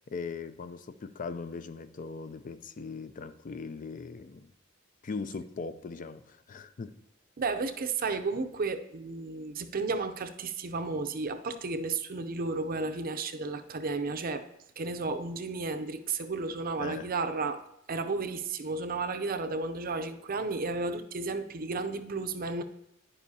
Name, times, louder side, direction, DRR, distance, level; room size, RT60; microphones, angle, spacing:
voice 1, 0.1-4.5 5.0-6.9 16.8-17.1, left 4 dB, 40° left, 0.4 m, -39 dB
voice 2, 7.4-14.4 14.8-17.6 17.9-22.6, right 3 dB, 45° right, 0.6 m, -33 dB
10.0 x 9.7 x 2.8 m
head